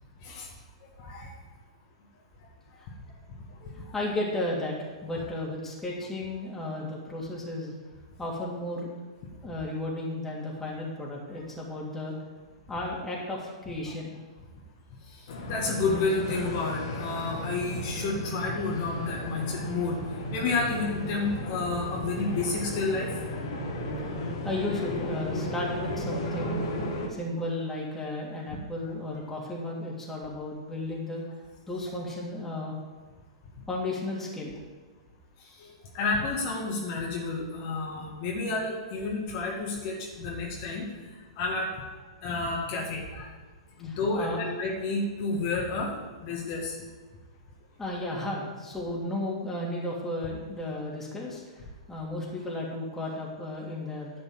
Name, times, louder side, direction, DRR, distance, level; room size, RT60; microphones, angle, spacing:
voice 1, 1.0-1.3 3.5-4.0 15.1-20.0 20.3-23.1 35.4-43.3 43.8-45.9 46.2-46.8, left 3 dB, 45° left, -3 dB, 2.2 m, -31 dB
voice 2, 3.9-7.7 8.2-8.9 9.4-12.1 12.7-14.2 24.4-26.7 27.1-31.2 31.7-32.7 33.7-34.5 43.8-44.4 47.8-54.1, left 1 dB, 10° left, -4 dB, 3.0 m, -34 dB
sound 1, 15.3-27.1, left 1 dB, 60° left, 1.9 m, -34 dB
11.0 x 5.4 x 7.7 m, 1.4 s
hypercardioid pair, 110°, 3 cm